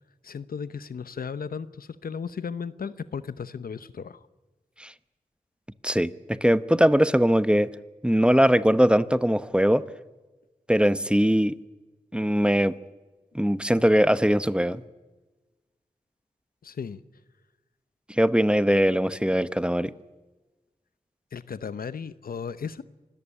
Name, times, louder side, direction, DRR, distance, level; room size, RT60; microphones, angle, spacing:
voice 1, 0.2-4.2 16.6-17.0 21.3-22.8, left 6 dB, 80° left, 0.9 m, -35 dB
voice 2, 5.8-7.7 8.0-9.8 10.7-11.5 12.1-12.8 13.3-14.8 18.1-19.9, equal, 5° right, 0.9 m, -21 dB
25.0 x 14.0 x 9.9 m
cardioid pair, 45°, 15 cm